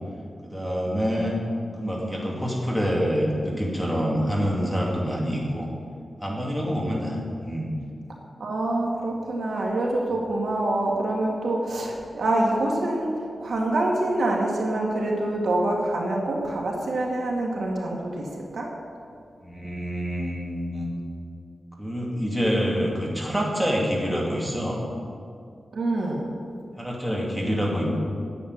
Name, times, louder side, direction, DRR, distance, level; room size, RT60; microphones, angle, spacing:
voice 1, 0.4-1.4 1.8-5.7 6.2-7.8 19.4-20.9 21.8-24.8 26.8-27.9, equal, 5° right, -4 dB, 2.6 m, -26 dB
voice 2, 8.4-18.7 25.7-26.2, right 1 dB, 80° right, -1 dB, 2.2 m, -26 dB
10.0 x 8.0 x 9.6 m, 2.3 s
wide cardioid pair, 130°, 0 cm